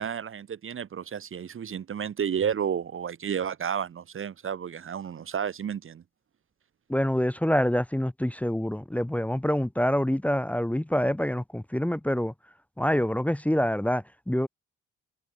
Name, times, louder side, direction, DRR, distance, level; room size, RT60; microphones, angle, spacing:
voice 1, 0.0-6.0, right 8 dB, 45° right, 1.1 m, -31 dB
voice 2, 6.9-12.3 12.8-14.5, equal, 5° left, 1.1 m, -26 dB
cardioid pair, 90°, 30 cm